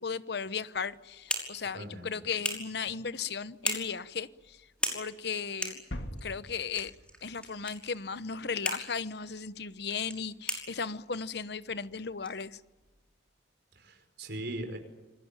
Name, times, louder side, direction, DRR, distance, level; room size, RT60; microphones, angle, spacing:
voice 1, 0.0-4.7 4.9-5.8 6.2-6.9 7.2-12.6, left 5 dB, 65° left, 1.0 m, -36 dB
sound 1, 0.7-13.1, left 1 dB, 5° left, 5.6 m, -41 dB
voice 2, 1.7-2.2 13.8-14.8, right 1 dB, 65° right, 5.4 m, -39 dB
sound 2, 5.9-8.6, equal, 80° left, 2.4 m, -44 dB
28.0 x 21.0 x 9.1 m
head